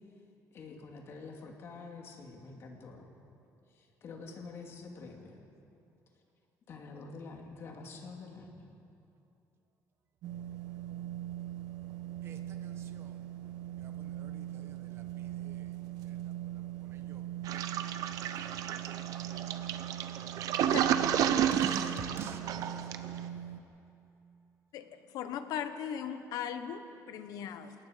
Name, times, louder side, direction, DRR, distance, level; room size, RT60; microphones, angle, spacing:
voice 1, 0.5-3.1 3.8-5.4 6.7-8.7, left 4 dB, 40° left, 2.3 m, -47 dB
sound 1, 10.2-23.6, right 12 dB, 85° right, 1.3 m, -41 dB
voice 2, 12.2-13.3 13.8-15.7 16.0-16.1 16.5-17.2 20.4-20.8 21.1-23.2, right 6 dB, 40° right, 1.2 m, -47 dB
Toilet flush, 17.4-23.2, right 9 dB, 65° right, 0.9 m, -31 dB
voice 3, 24.7-27.7, left 8 dB, 70° left, 1.2 m, -38 dB
28.5 x 18.5 x 5.1 m
cardioid pair, 170°, 6 cm